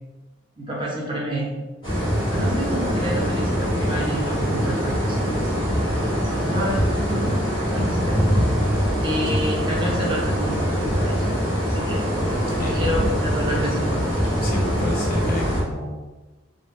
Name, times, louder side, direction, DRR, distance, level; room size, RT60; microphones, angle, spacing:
voice 1, 0.6-1.6 2.3-5.5 6.2-7.4 7.7-8.6 9.0-11.2 11.6-12.1 12.4-14.1, equal, 25° right, -3 dB, 0.5 m, -29 dB
sound 1, 1.8-15.6, equal, 25° left, 1.0 m, -23 dB
voice 2, 14.4-16.0, left 1 dB, 45° left, -1 dB, 0.5 m, -29 dB
2.2 x 2.0 x 3.4 m, 1.2 s
head